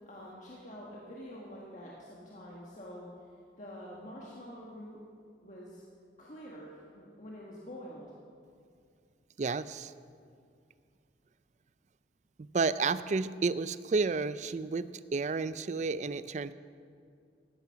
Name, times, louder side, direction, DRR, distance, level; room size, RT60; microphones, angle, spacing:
voice 1, 0.1-5.0 5.4-5.8 6.2-8.1, equal, 45° left, -4 dB, 1.6 m, -47 dB
voice 2, 9.4-9.9 12.4-16.5, right 4 dB, 40° right, 15 dB, 0.4 m, -31 dB
15.0 x 12.0 x 5.8 m, 2.3 s
head